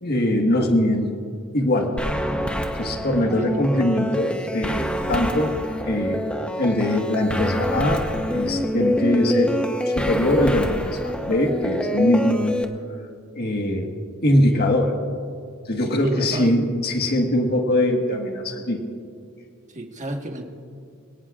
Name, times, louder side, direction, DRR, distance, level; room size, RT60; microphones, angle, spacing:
voice 1, 0.0-1.1 1.5-1.9 2.8-5.5 5.9-6.2 6.6-8.0 8.3-9.6 9.9-12.6 13.3-13.9 14.2-14.9 15.7-18.8, left 1 dB, 50° left, 2 dB, 1.6 m, -22 dB
sound 1, 2.0-12.6, equal, 5° left, 0.9 m, -26 dB
voice 2, 3.2-3.6 5.7-5.8 15.8-16.5 19.7-20.4, right 2 dB, 35° right, 2 dB, 1.6 m, -32 dB
26.5 x 18.0 x 2.5 m, 2.3 s
head